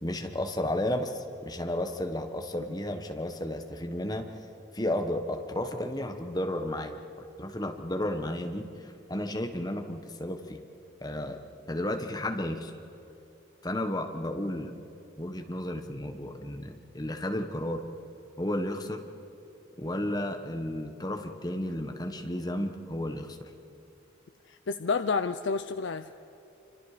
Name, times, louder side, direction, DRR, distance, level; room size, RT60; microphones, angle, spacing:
voice 1, 0.0-4.3 4.7-7.0 7.4-10.6 11.0-11.4 11.7-12.7 13.6-14.7 15.2-17.8 18.4-19.0 19.8-23.5, left 1 dB, 20° left, 5 dB, 1.4 m, -33 dB
voice 2, 24.5-26.1, left 4 dB, 80° left, 9 dB, 0.6 m, -30 dB
27.0 x 25.5 x 5.0 m, 2.8 s
head